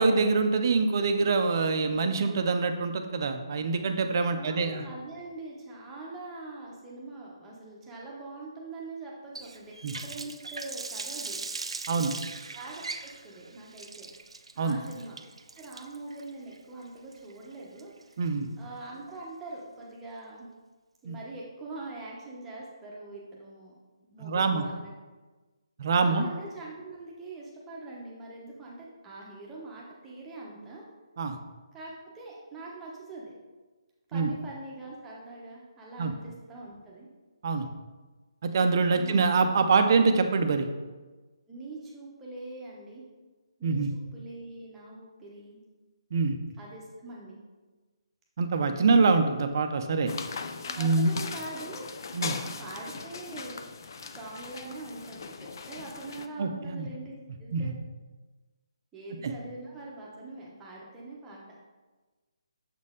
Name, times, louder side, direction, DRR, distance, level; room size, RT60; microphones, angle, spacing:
voice 1, 0.0-4.8 9.8-9.9 11.9-12.2 14.6-14.8 18.2-18.5 21.0-21.2 24.2-24.6 25.8-26.3 31.2-31.4 34.1-34.3 36.0-36.1 37.4-37.7 38.4-40.7 43.6-43.9 46.1-46.4 48.4-50.1 50.8-51.2 52.1-52.4 56.4-56.9 57.5-57.7 59.2-59.3, right 4 dB, 40° right, 7 dB, 0.5 m, -25 dB
voice 2, 4.3-9.8 10.0-11.4 12.5-14.1 14.5-15.2 15.6-17.9 18.6-20.5 21.0-23.7 24.0-24.9 26.0-30.8 31.7-33.3 34.1-37.1 38.9-39.3 41.5-43.0 43.6-45.6 46.6-47.4 50.7-51.9 52.3-53.6 54.1-57.7 58.9-61.4, right 2 dB, 10° right, -5 dB, 0.9 m, -43 dB
Water tap faucet, 9.3-18.3, right 4 dB, 85° right, 0.5 m, -40 dB
sound 1, 50.1-56.3, left 5 dB, 45° left, 0.4 m, -39 dB
7.2 x 4.2 x 3.7 m, 1.3 s
hypercardioid pair, 170°, 3 cm